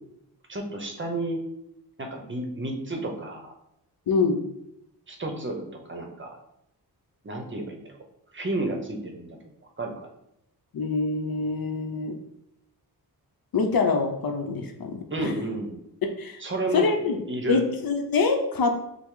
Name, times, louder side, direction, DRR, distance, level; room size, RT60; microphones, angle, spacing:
voice 1, 0.5-1.4 2.0-3.5 5.1-6.4 7.2-8.0 8.3-9.4 9.8-10.1 15.1-15.7 16.4-16.9 17.3-17.6, right 2 dB, 30° right, 3 dB, 0.7 m, -31 dB
voice 2, 4.1-4.4 10.7-12.2 13.5-15.3 16.0-16.4 16.7-17.2 17.5-18.8, left 4 dB, 65° left, 4 dB, 0.7 m, -25 dB
5.8 x 2.0 x 3.7 m, 0.79 s
wide cardioid pair, 115°, 38 cm